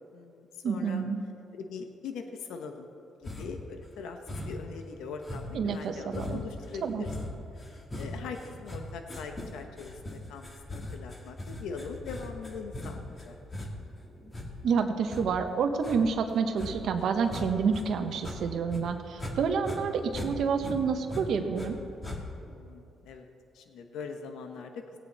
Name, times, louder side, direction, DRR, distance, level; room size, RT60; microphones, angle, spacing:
voice 1, 0.1-1.0 1.5-2.9 3.2-7.1 7.9-13.7 22.5-23.3 23.5-25.0, left 5 dB, 85° left, 5 dB, 0.9 m, -42 dB
voice 2, 0.6-1.2 5.5-6.4 6.8-7.1 14.6-21.8, right 5 dB, 70° right, 6 dB, 1.0 m, -28 dB
sound 1, 3.2-3.7 4.3-4.7 5.2-17.8 18.1-19.4 19.6-21.7 22.0-22.5, left 1 dB, 25° left, 1.9 m, -40 dB
17.5 x 8.6 x 4.2 m, 2.7 s
cardioid pair, 90°, 0 cm